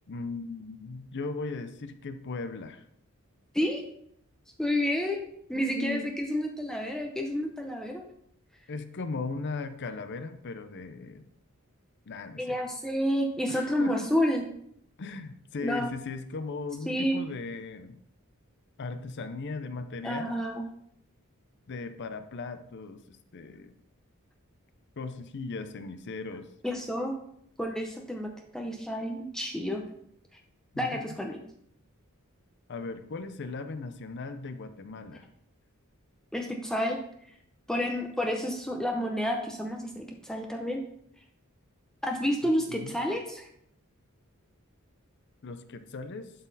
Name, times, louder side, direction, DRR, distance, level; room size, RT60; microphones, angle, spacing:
voice 1, 0.1-2.8 5.6-6.1 8.7-11.2 12.1-12.6 13.5-14.2 15.0-18.0 18.8-20.4 21.7-23.7 25.0-26.5 30.7-31.2 32.7-35.3 42.7-43.0 45.4-46.3, left 3 dB, 55° left, 9 dB, 0.6 m, -37 dB
voice 2, 4.6-8.0 12.4-14.4 15.6-15.9 16.9-17.2 20.0-20.7 26.6-27.1 27.6-29.8 30.8-31.4 36.3-37.0 37.7-40.8 42.0-43.5, equal, 5° left, 1 dB, 0.6 m, -30 dB
11.5 x 4.0 x 4.0 m, 0.71 s
head